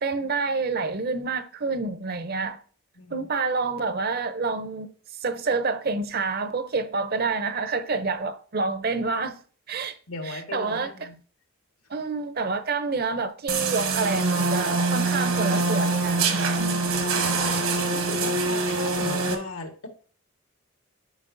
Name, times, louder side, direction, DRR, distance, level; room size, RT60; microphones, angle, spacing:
voice 1, 0.0-2.6 3.1-4.9 5.2-9.4 9.7-10.0 10.2-11.1 11.9-16.8, right 4 dB, 45° right, 0.6 m, -28 dB
voice 2, 3.0-3.3 10.1-11.1 17.9-19.9, left 3 dB, 85° left, 1.5 m, -37 dB
sound 1, 13.5-19.3, right 3 dB, 75° right, 1.2 m, -24 dB
11.0 x 5.3 x 2.6 m
head